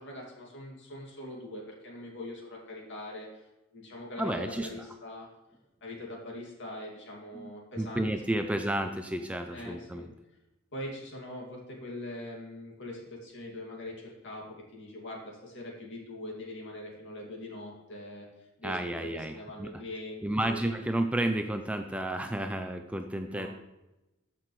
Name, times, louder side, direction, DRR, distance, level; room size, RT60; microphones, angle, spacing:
voice 1, 0.0-5.3 5.8-8.1 8.4-8.8 9.5-10.1 10.7-20.8 23.2-23.5, left 1 dB, 55° left, -1 dB, 2.4 m, -42 dB
voice 2, 4.2-4.7 7.3-7.5 7.8-10.1 18.6-19.7 20.2-23.5, right 1 dB, 5° right, 6 dB, 0.4 m, -31 dB
14.0 x 6.0 x 3.2 m, 0.99 s
head